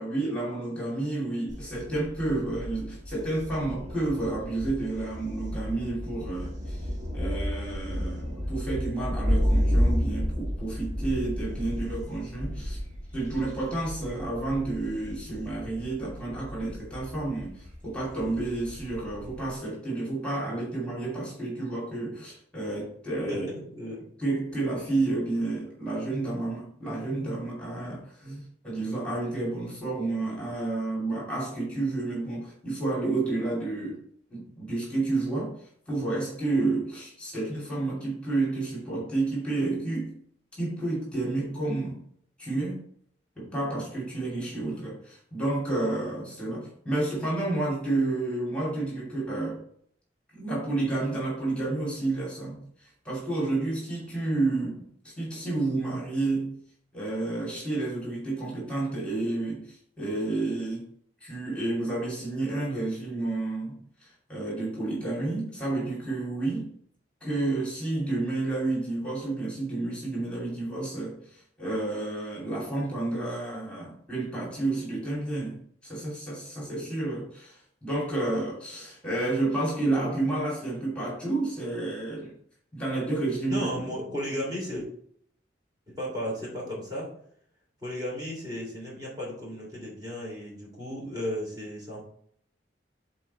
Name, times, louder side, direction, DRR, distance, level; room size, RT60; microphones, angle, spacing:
voice 1, 0.0-6.8 7.1-12.8 13.1-23.4 24.2-34.0 34.3-35.5 35.9-40.1 40.6-42.0 42.4-42.8 43.4-49.6 50.3-52.6 53.0-56.5 56.9-60.9 61.2-66.7 67.2-82.3 82.7-83.9, right 2 dB, 5° left, 2.7 m, -30 dB
Thunder, 1.5-19.5, equal, 40° right, 1.5 m, -32 dB
voice 2, 23.3-24.1 83.5-84.8 85.9-87.1 87.8-92.0, equal, 20° right, 2.8 m, -34 dB
7.0 x 4.3 x 4.2 m
head